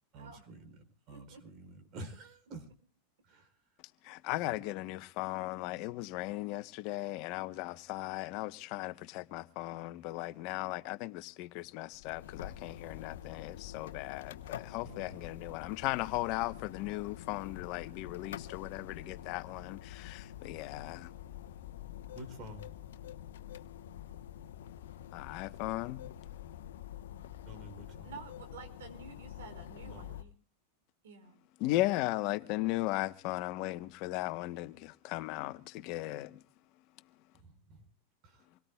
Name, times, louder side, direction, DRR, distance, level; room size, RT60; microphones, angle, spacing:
voice 1, 0.1-0.6 1.1-2.7 3.3-3.5 4.4-4.6 14.8-15.4 22.1-22.7 27.4-28.2 29.8-30.2 37.4-37.8 38.2-38.4, right 1 dB, 45° right, 4.2 m, -49 dB
voice 2, 1.1-1.4 28.0-30.3 31.0-31.4, right 5 dB, 80° right, 5.0 m, -50 dB
voice 3, 4.1-21.1 25.1-26.0 31.6-36.4, left 18 dB, 50° left, 1.0 m, -37 dB
sound 1, 11.9-30.2, left 11 dB, 80° left, 0.9 m, -47 dB
26.0 x 18.0 x 2.3 m
hypercardioid pair, 120°, 0 cm